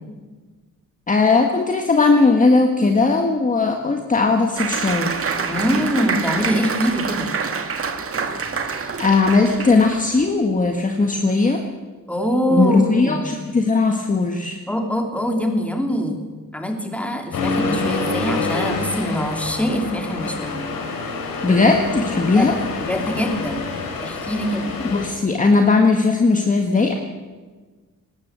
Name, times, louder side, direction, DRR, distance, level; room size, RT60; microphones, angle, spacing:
voice 1, 1.1-5.1 8.6-11.6 12.5-14.6 21.4-22.5 24.8-26.9, left 3 dB, 25° left, 3 dB, 1.7 m, -18 dB
Applause, 4.6-10.3, right 5 dB, 40° right, 1.9 m, -26 dB
voice 2, 5.5-7.3 12.1-13.3 14.7-16.2 16.5-20.7 22.3-22.5 22.8-23.7 24.0-24.7, equal, 5° left, 3 dB, 3.1 m, -23 dB
Accelerating revving vroom, 17.3-25.1, left 3 dB, 90° left, 5.3 m, -27 dB
19.5 x 19.0 x 8.3 m, 1.4 s
wide cardioid pair, 150°, 33 cm